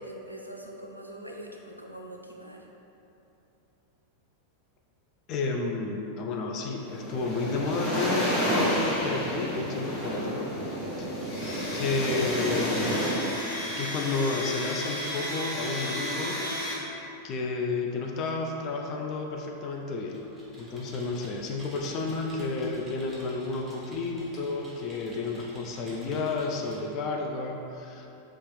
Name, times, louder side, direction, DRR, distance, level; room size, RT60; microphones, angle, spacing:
voice 1, 0.0-2.7, right 1 dB, 90° right, 0 dB, 0.3 m, -43 dB
voice 2, 5.3-10.5 11.7-13.0 13.7-16.4 17.2-20.3 20.6-28.1, left 3 dB, 35° left, 1 dB, 0.3 m, -31 dB
sound 1, 6.7-13.1, equal, 15° left, 1.1 m, -30 dB
Domestic sounds home sounds, 11.2-16.7, equal, 50° left, 0.8 m, -34 dB
Computer keyboard, 20.1-26.9, right 1 dB, 5° right, 1.0 m, -49 dB
3.0 x 2.9 x 3.2 m, 3.0 s
figure-of-eight pair, 90°, 0 cm